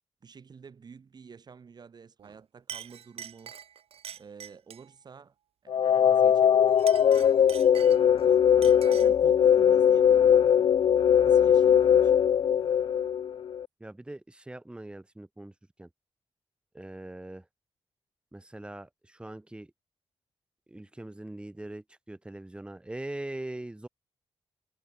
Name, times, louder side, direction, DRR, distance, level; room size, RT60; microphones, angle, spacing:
voice 1, 0.2-3.5 4.2-5.3 5.6-6.8 8.2-12.3, right 6 dB, 40° right, 4.6 m, -50 dB
Chink clink, 2.2-2.4 2.7-4.9 6.7-8.2 8.6-9.2, right 9 dB, 70° right, 1.8 m, -44 dB
sound 1, 5.7-13.6, left 8 dB, 55° left, 0.4 m, -21 dB
voice 2, 13.8-15.5 15.8-15.9 16.7-17.5 18.3-19.7 20.7-23.9, right 1 dB, 10° right, 5.2 m, -41 dB
wide cardioid pair, 170°, 10 cm